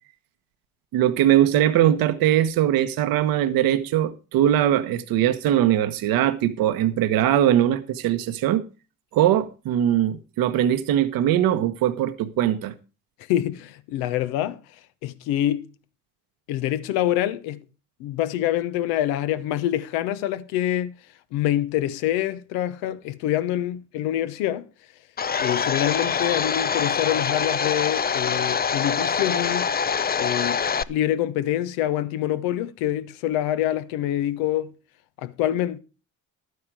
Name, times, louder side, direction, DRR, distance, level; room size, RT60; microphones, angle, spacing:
voice 1, 0.9-8.6 9.1-12.7, right 11 dB, 75° right, 1.1 m, -21 dB
voice 2, 13.3-14.6 15.0-15.7 16.5-17.6 18.0-20.9 21.3-24.7 25.4-29.7 30.2-30.6 30.9-34.7 35.2-35.8, left 12 dB, 85° left, 1.0 m, -25 dB
Domestic sounds home sounds, 25.2-30.8, left 6 dB, 25° left, 0.6 m, -24 dB
12.0 x 9.6 x 4.8 m
supercardioid pair, 65°, 36 cm